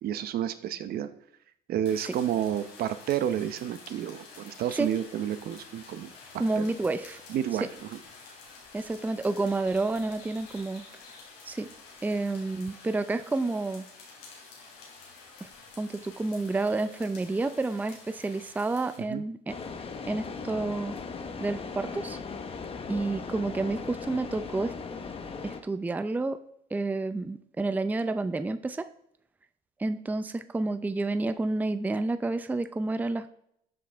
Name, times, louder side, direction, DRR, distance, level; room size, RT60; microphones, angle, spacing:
voice 1, 0.0-1.1 1.7-6.1 6.6-6.7 7.3-8.0 19.1-19.2, right 10 dB, 65° right, 12 dB, 0.8 m, -30 dB
sound 1, 1.8-19.0, left 4 dB, 90° left, 3.6 m, -50 dB
voice 2, 6.4-7.2 8.7-10.8 11.5-11.7 12.0-13.8 15.4-15.5 15.8-19.5 20.1-21.0 21.4-22.2 22.9-24.7 25.4-26.4 26.7-28.9 29.8-33.3, right 2 dB, 10° right, 11 dB, 0.5 m, -30 dB
sound 2, 19.5-25.6, left 5 dB, 35° left, 1.1 m, -38 dB
12.5 x 7.8 x 3.5 m, 0.73 s
cardioid pair, 110°, 17 cm